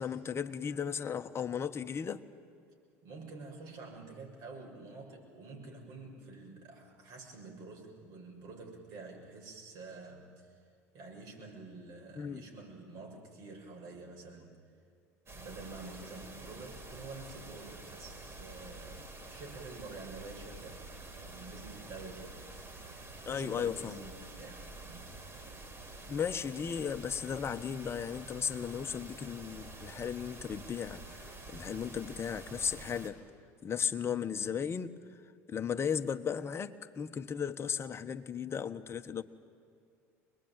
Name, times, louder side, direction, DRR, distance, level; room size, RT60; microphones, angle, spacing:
voice 1, 0.0-2.2 12.2-12.4 23.2-24.0 26.1-33.2 33.6-34.9 35.5-39.2, left 7 dB, 30° left, 7 dB, 1.3 m, -35 dB
voice 2, 3.0-10.6 10.9-14.6 15.3-20.8 21.1-22.4 23.2-25.1, right 3 dB, 60° right, 0 dB, 6.9 m, -48 dB
sound 1, 15.3-33.1, right 2 dB, 35° right, 4.8 m, -48 dB
24.5 x 21.0 x 9.2 m, 2.4 s
hypercardioid pair, 75°, 8 cm